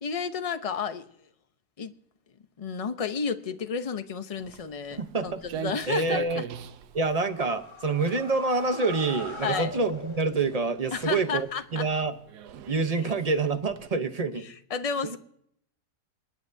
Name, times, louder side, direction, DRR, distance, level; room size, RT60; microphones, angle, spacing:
voice 1, 0.0-1.1 1.8-1.9 2.6-5.3 5.6-6.4 9.4-9.7 10.9-11.9 14.7-15.2, left 6 dB, 35° left, 9 dB, 0.6 m, -31 dB
Walk footsteps, 4.4-13.9, right 9 dB, 85° right, 1.3 m, -43 dB
voice 2, 5.0-5.4 5.9-6.4 6.9-12.1 12.7-14.5 15.0-15.2, right 3 dB, 30° right, 8 dB, 0.7 m, -27 dB
sound 1, 7.0-10.8, left 1 dB, 20° left, 1.6 m, -41 dB
27.0 x 9.6 x 2.7 m, 0.70 s
omnidirectional pair, 1.7 m